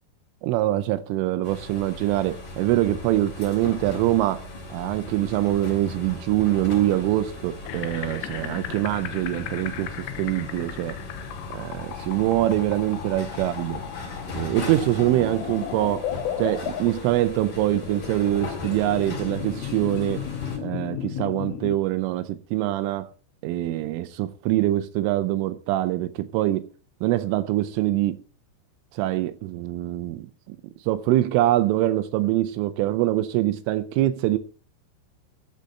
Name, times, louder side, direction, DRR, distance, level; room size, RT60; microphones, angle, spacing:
voice 1, 0.4-4.4 4.7-11.0 11.5-13.8 14.3-16.1 16.4-20.3 20.6-23.1 23.4-26.7 27.0-28.2 28.9-30.6 30.9-34.4, right 15 dB, 85° right, 3.3 m, -24 dB
sound 1, 1.4-20.6, left 2 dB, 45° left, 5.4 m, -38 dB
sound 2, 7.6-21.8, left 10 dB, 85° left, 3.6 m, -35 dB
14.0 x 6.7 x 7.5 m
omnidirectional pair, 5.6 m